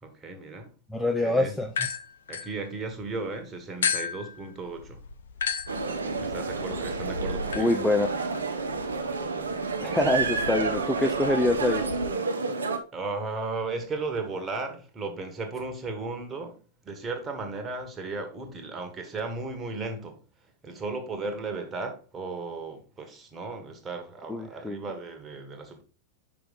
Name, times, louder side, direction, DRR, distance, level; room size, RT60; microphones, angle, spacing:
voice 1, 0.0-0.7 1.2-1.6 2.3-5.0 6.2-7.7 12.9-25.8, right 3 dB, 20° right, 1.5 m, -35 dB
voice 2, 0.9-1.7 7.6-8.1 9.8-11.9 24.3-24.8, left 2 dB, 5° left, 0.5 m, -25 dB
sound 1, 1.7-3.2 3.8-12.1, left 6 dB, 65° left, 0.5 m, -35 dB
sound 2, 5.7-12.8, right 4 dB, 70° right, 0.8 m, -30 dB
5.6 x 5.0 x 4.0 m
figure-of-eight pair, 90°, 0 cm